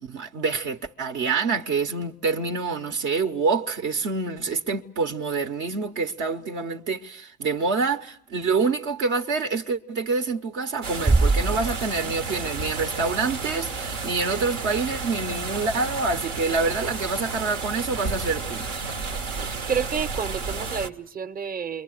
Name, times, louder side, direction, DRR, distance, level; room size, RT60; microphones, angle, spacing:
voice 1, 0.0-18.7, right 4 dB, 70° right, 1.0 m, -26 dB
sound 1, 10.8-20.9, right 4 dB, 90° right, 1.1 m, -32 dB
Bass drum, 11.1-12.5, right 3 dB, 20° right, 0.9 m, -23 dB
voice 2, 19.3-21.8, right 6 dB, 45° right, 1.0 m, -30 dB
28.5 x 23.0 x 6.5 m
hypercardioid pair, 65°, 21 cm